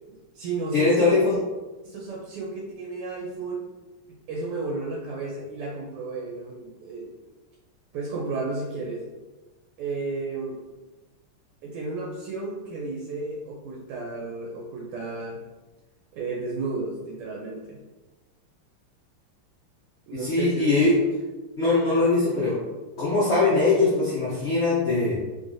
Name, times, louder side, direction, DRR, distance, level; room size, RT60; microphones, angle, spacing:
voice 1, 0.1-1.4 1.8-3.6 4.3-7.1 7.9-9.0 9.8-10.6 11.6-15.4 16.1-17.8 20.1-20.9 23.7-23.9, right 3 dB, 85° right, -2 dB, 1.6 m, -33 dB
voice 2, 0.7-1.3 20.2-20.9 21.6-22.6 23.0-25.2, left 3 dB, 85° left, -8 dB, 0.6 m, -21 dB
3.8 x 3.1 x 2.6 m, 1.2 s
omnidirectional pair, 2.4 m